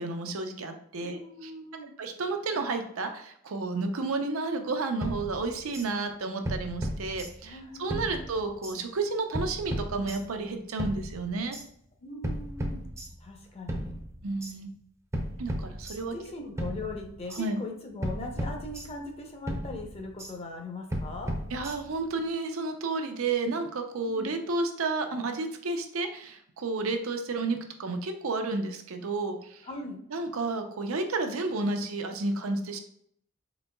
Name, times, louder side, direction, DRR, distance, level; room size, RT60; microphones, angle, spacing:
voice 1, 0.0-1.5 2.0-11.6 14.2-14.7 15.4-16.2 17.3-17.6 21.5-29.7 30.1-32.8, right 3 dB, 90° right, 5 dB, 0.6 m, -31 dB
voice 2, 1.0-1.9 7.4-8.2 12.0-12.9 13.2-14.0 16.0-21.3 24.1-24.4 29.7-30.0, left 2 dB, 30° left, 2 dB, 0.7 m, -40 dB
sound 1, 5.0-5.9 6.4-7.6 7.9-8.8 9.3-10.4 10.8-11.7 12.2-13.4 13.7-14.5 15.1-16.3 16.6-17.4 18.0-19.2 19.5-20.3 20.9-22.1, equal, 15° right, 0.5 m, -35 dB
4.0 x 3.8 x 2.2 m, 0.66 s
head